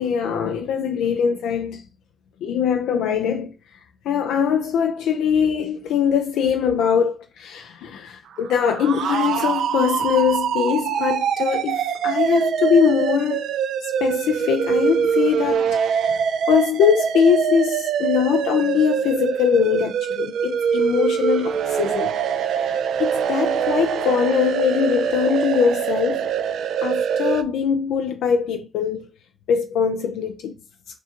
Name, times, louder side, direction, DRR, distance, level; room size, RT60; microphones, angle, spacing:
voice 1, 0.0-1.8 2.4-3.5 4.1-13.4 14.0-15.7 16.0-16.1 16.5-22.2 22.6-22.7 23.0-26.3 26.8-29.1 29.5-30.6, left 7 dB, 90° left, 0.3 m, -22 dB
sound 1, 8.4-27.4, right 8 dB, 80° right, 0.3 m, -23 dB
4.6 x 2.3 x 2.8 m
supercardioid pair, 55°, 0 cm